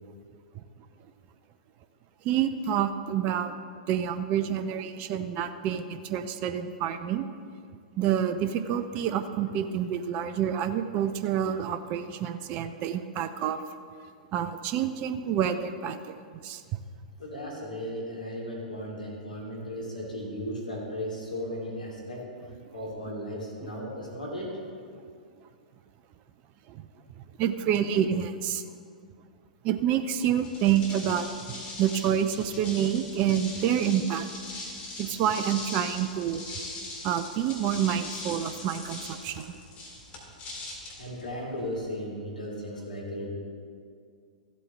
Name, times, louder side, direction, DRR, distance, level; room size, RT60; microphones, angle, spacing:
voice 1, 2.2-3.6 3.9-7.3 8.0-13.6 14.3-16.2 16.4-16.6 26.7-26.8 27.4-28.6 29.6-34.3 35.0-36.4 37.0-39.6, right 9 dB, 35° right, 9 dB, 0.5 m, -28 dB
voice 2, 17.2-22.2 22.7-24.6 40.9-43.3, equal, 85° left, -3 dB, 2.9 m, -36 dB
sound 1, 30.3-41.8, left 2 dB, 30° left, 2.4 m, -41 dB
14.5 x 8.4 x 3.3 m, 2.2 s
figure-of-eight pair, 105°, 4 cm